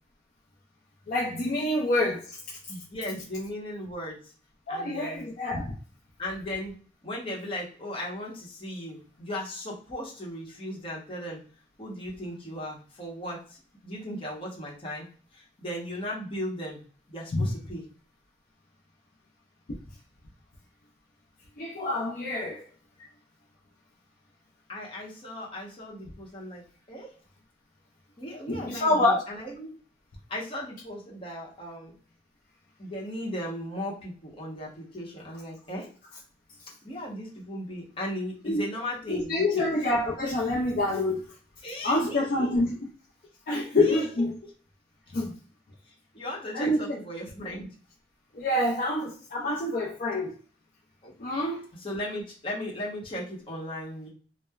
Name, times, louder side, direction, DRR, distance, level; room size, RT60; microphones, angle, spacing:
voice 1, 1.1-2.6 4.7-5.7 17.3-17.5 21.6-22.7 28.5-29.2 38.4-38.6 39.1-41.2 41.8-42.7 43.5-44.3 45.1-45.4 46.5-47.0 48.3-50.3 51.2-51.6, left 1 dB, 50° left, -4 dB, 0.5 m, -26 dB
voice 2, 2.7-4.3 4.7-5.3 6.2-11.4 11.8-16.8 17.1-17.8 23.0-23.1 24.7-27.1 28.2-29.8 30.3-31.9 32.8-35.9 36.8-39.7 41.6-42.8 43.5-44.5 45.9-47.7 51.0-51.1 51.7-54.1, left 1 dB, 30° left, -4 dB, 0.9 m, -37 dB
3.1 x 2.0 x 2.3 m, 0.41 s
head